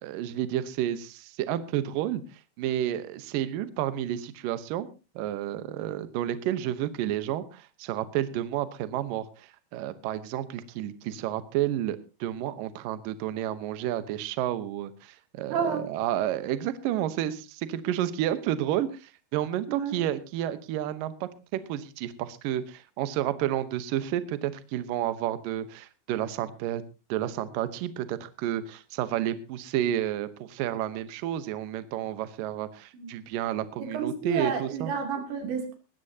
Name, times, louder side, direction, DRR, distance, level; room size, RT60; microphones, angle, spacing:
voice 1, 0.0-2.2 2.6-4.9 5.2-26.8 27.1-34.9, right 12 dB, 85° right, 12 dB, 1.9 m, -31 dB
voice 2, 15.5-15.9 19.7-20.0 32.9-33.3 33.8-35.7, right 6 dB, 70° right, 4 dB, 5.0 m, -30 dB
19.5 x 14.5 x 2.8 m, 0.31 s
omnidirectional pair, 5.4 m